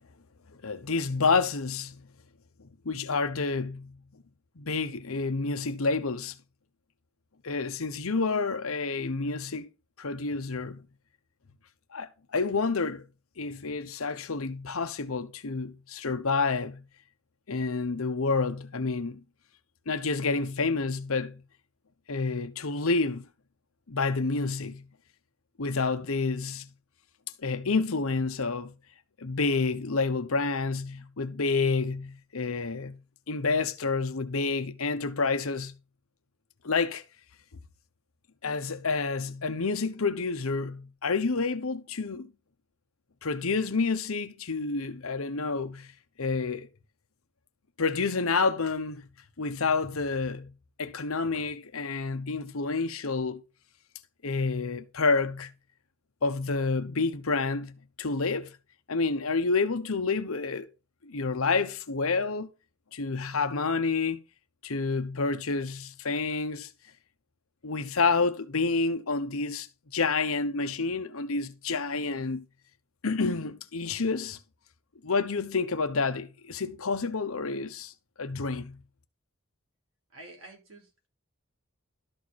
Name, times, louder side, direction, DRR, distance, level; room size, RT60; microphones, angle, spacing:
voice 1, 0.6-2.0 2.8-4.0 4.6-6.4 7.4-9.7 10.0-10.8 11.9-13.0 13.4-16.8 17.5-19.2 19.9-21.4 22.1-23.3 23.9-24.9 25.6-26.7 27.4-28.7 29.2-33.0 33.3-35.8 36.6-37.0 38.4-42.3 43.2-45.9 46.2-46.7 47.8-49.1 49.4-50.5 50.8-53.4 54.2-55.5 56.2-58.6 58.9-60.7 61.0-62.5 62.9-64.2 64.6-66.7 67.6-69.7 69.9-72.4 73.0-74.4 75.0-77.9 78.2-78.8, left 4 dB, 75° left, 1.0 m, -29 dB
voice 2, 80.1-81.1, right 2 dB, 70° right, 4.3 m, -49 dB
12.5 x 4.7 x 4.2 m
head